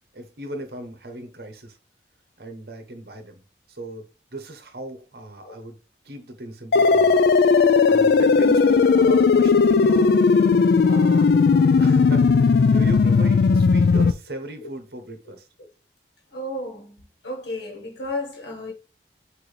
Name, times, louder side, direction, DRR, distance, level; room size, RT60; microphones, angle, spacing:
voice 1, 0.1-1.8 2.4-3.4 3.7-4.1 4.3-5.8 6.0-7.1 7.9-10.2 10.9-11.3 11.8-15.5, right 1 dB, 60° right, 1.0 m, -36 dB
sound 1, 6.7-14.1, left 5 dB, 65° left, 0.3 m, -17 dB
voice 2, 16.3-17.0 17.2-18.7, left 1 dB, 80° left, 1.3 m, -32 dB
6.0 x 2.7 x 3.2 m
head